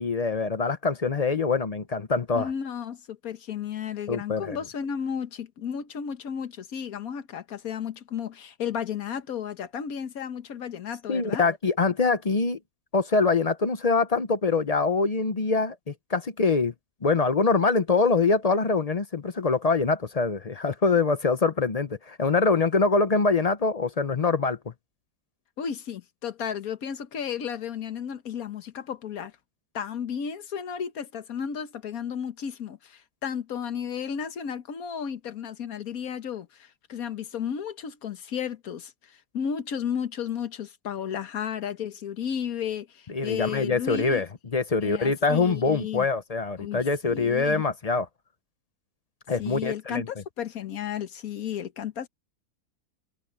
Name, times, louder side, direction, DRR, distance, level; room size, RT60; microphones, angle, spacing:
voice 1, 0.0-2.5 4.1-4.6 11.1-12.6 12.9-16.7 17.0-24.6 43.1-48.1 49.3-50.0, left 4 dB, 40° left, 0.5 m, -24 dB
voice 2, 2.3-11.5 25.6-29.3 29.7-44.2 44.8-46.1 46.6-47.6 49.4-52.1, left 8 dB, 65° left, 1.6 m, -33 dB
omnidirectional pair, 1.7 m